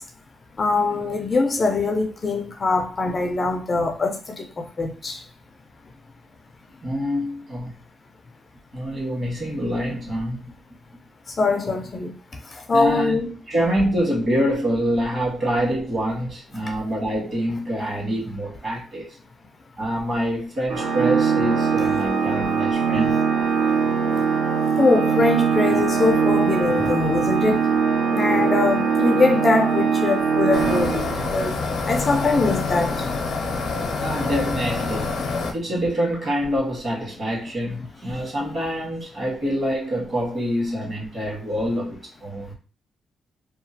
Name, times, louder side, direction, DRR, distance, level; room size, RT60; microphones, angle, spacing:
voice 1, 0.6-4.5 4.8-5.2 11.4-12.1 12.7-13.3 21.8-21.9 24.8-27.6 28.1-31.5 31.9-33.0, left 3 dB, 30° left, 0.4 m, -22 dB
voice 2, 6.8-7.8 8.7-10.4 12.7-19.2 19.8-23.2 34.0-35.2 35.5-42.5, equal, 40° right, 1.5 m, -26 dB
Organ, 20.7-31.5, right 6 dB, 80° right, 0.6 m, -21 dB
sound 1, 30.5-35.5, left 4 dB, 80° left, 0.6 m, -26 dB
2.9 x 2.2 x 2.7 m
cardioid pair, 155°, 0 cm